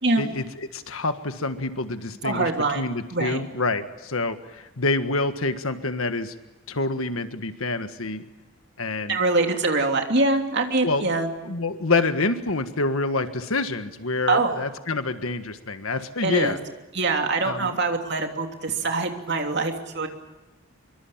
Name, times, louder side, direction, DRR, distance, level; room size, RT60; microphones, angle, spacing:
voice 1, 0.2-2.5 2.7-6.3 6.7-8.2 8.8-9.2 10.8-11.1 11.4-16.6 17.4-17.7, left 3 dB, 75° left, 9 dB, 1.6 m, -27 dB
voice 2, 2.2-2.8 3.1-3.4 9.1-11.3 14.3-14.6 16.2-16.6 16.9-20.1, right 3 dB, 50° right, 4 dB, 3.1 m, -24 dB
24.5 x 23.5 x 8.9 m, 1.0 s
head